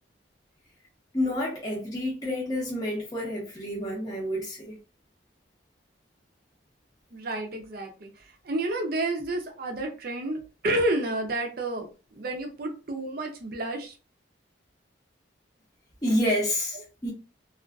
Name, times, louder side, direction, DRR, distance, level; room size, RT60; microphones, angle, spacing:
voice 1, 1.1-4.7 16.0-17.1, left 1 dB, 20° left, 0.6 m, -29 dB
voice 2, 7.1-8.1 8.4-13.9, right 2 dB, 50° right, 0.6 m, -30 dB
2.5 x 2.4 x 2.2 m
head